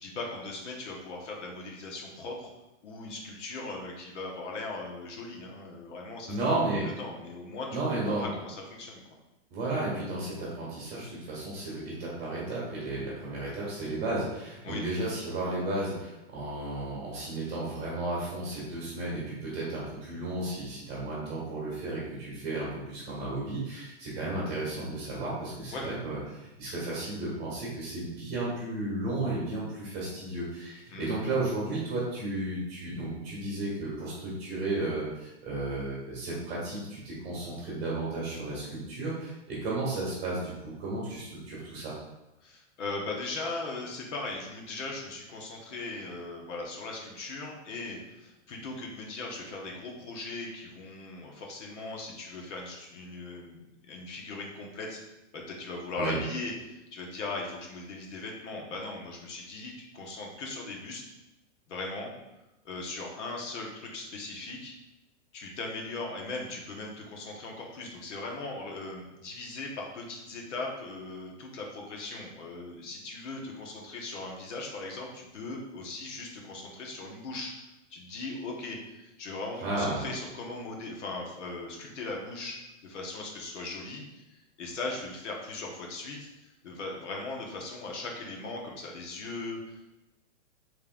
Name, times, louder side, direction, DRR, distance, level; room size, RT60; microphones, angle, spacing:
voice 1, 0.0-2.5 2.8-6.4 7.0-7.7 8.1-9.0 14.6-14.8 25.7-25.9 30.9-31.1 42.4-55.0 55.3-61.0 61.7-62.1 62.6-64.7 65.3-77.5 77.9-82.6 82.8-86.3 86.6-89.8, left 3 dB, 70° left, 0 dB, 1.2 m, -39 dB
voice 2, 6.3-6.9 7.7-8.3 9.5-41.9 56.0-56.2 79.5-80.1, right 2 dB, 20° right, -7 dB, 1.3 m, -33 dB
5.2 x 3.3 x 2.5 m, 0.98 s
supercardioid pair, 165°, 37 cm